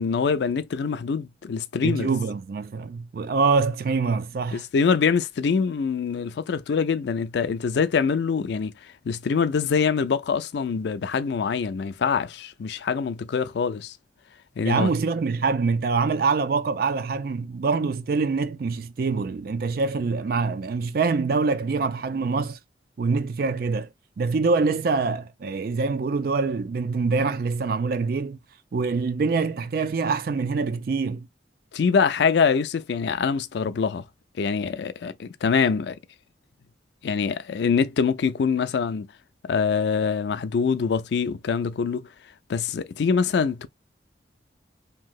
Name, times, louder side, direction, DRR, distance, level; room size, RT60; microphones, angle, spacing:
voice 1, 0.0-2.1 4.5-14.0 14.6-14.9 31.7-34.0 34.4-36.0 37.0-39.1 39.4-42.1 42.5-43.7, left 5 dB, 70° left, 0.4 m, -24 dB
voice 2, 1.8-4.6 14.6-22.6 23.0-23.9 24.2-28.4 28.7-31.3, right 4 dB, 55° right, 0.4 m, -25 dB
3.0 x 2.7 x 2.3 m
head